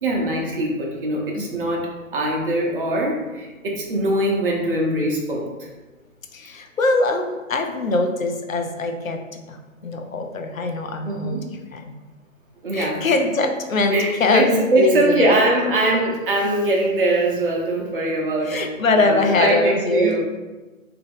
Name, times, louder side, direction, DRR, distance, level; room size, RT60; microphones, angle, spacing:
voice 1, 0.0-5.5 11.0-11.4 12.6-13.0 13.9-18.7 18.9-20.2, right 1 dB, 40° right, -1 dB, 0.9 m, -22 dB
voice 2, 6.3-9.2 9.5-11.4 11.7-11.9 12.7-15.4 18.4-20.2, left 3 dB, 75° left, 5 dB, 0.6 m, -22 dB
3.4 x 2.9 x 3.5 m, 1.2 s
figure-of-eight pair, 140°, 41 cm